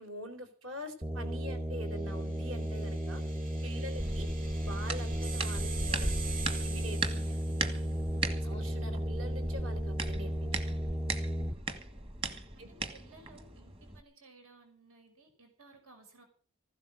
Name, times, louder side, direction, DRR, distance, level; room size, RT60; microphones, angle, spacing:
voice 1, 0.0-3.2 3.6-4.3 4.6-6.1 6.6-7.2 8.4-10.8 12.6-12.7, equal, 65° right, 7 dB, 3.9 m, -44 dB
sound 1, 1.0-11.6, equal, 10° right, 0.6 m, -34 dB
sound 2, 2.1-8.0, right 6 dB, 40° right, 7.4 m, -46 dB
sound 3, 4.0-14.0, right 3 dB, 25° right, 1.5 m, -39 dB
voice 2, 7.2-8.4 12.6-16.2, right 2 dB, 80° right, 4 dB, 5.5 m, -58 dB
15.5 x 12.0 x 6.3 m, 0.42 s
head